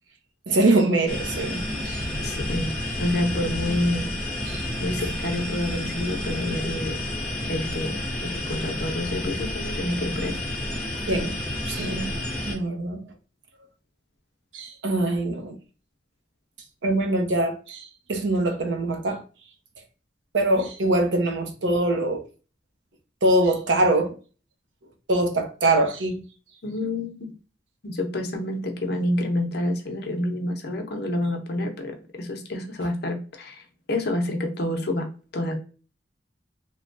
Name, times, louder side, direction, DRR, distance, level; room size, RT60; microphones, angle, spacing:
voice 1, 0.5-2.0 4.4-4.6 11.1-11.4 11.7-12.2 12.5-13.1 14.5-15.6 16.8-19.2 20.3-22.3 23.2-24.2 25.1-26.2, right 2 dB, 85° right, 0.7 m, -23 dB
sound 1, 1.1-12.6, left 1 dB, 5° left, 0.7 m, -30 dB
voice 2, 1.8-2.7 3.0-4.1 4.8-7.0 7.5-7.9 8.2-10.4 26.6-27.3 27.8-33.6 33.9-35.1 35.3-35.6, left 1 dB, 60° left, 0.7 m, -28 dB
3.3 x 2.2 x 2.5 m
head